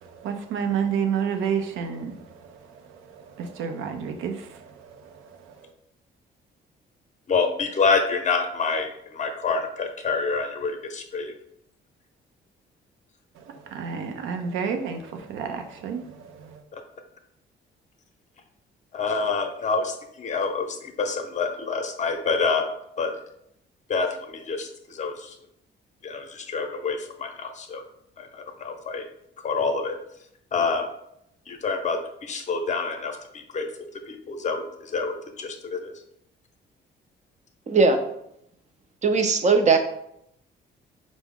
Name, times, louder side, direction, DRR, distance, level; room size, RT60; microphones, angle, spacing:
voice 1, 0.0-5.7 13.3-16.6, right 7 dB, 90° right, 0.5 m, -31 dB
voice 2, 7.3-11.3 16.7-16.8 18.9-22.7 23.0-23.1 23.9-25.3 26.0-27.8 28.2-29.0 29.4-30.0 30.5-30.9 31.5-33.7 34.1-35.9, left 4 dB, 35° left, 0.7 m, -27 dB
voice 3, 37.7-38.0 39.0-39.8, right 4 dB, 35° right, 0.6 m, -19 dB
4.6 x 2.0 x 3.6 m
cardioid pair, 90°, 20 cm